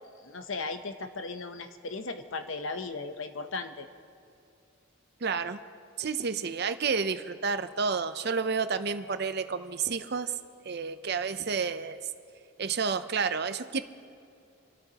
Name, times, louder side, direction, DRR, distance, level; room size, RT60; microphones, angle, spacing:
voice 1, 0.2-3.9, left 3 dB, 70° left, 8 dB, 0.9 m, -36 dB
voice 2, 5.2-5.6 6.0-10.3 10.6-12.0 12.6-13.8, right 5 dB, 50° right, 10 dB, 0.6 m, -30 dB
28.5 x 13.0 x 3.0 m, 2.6 s
head